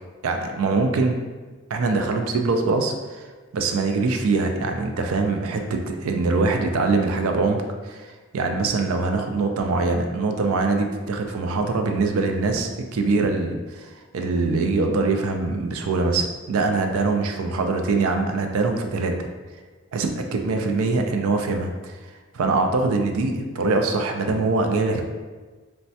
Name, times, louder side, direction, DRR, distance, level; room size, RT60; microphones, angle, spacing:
voice 1, 0.2-1.2 1.7-3.2 3.5-8.1 8.3-19.3 19.9-21.9 22.3-25.0, right 3 dB, 70° right, 4 dB, 0.3 m, -23 dB
3.2 x 2.1 x 2.7 m, 1.3 s
head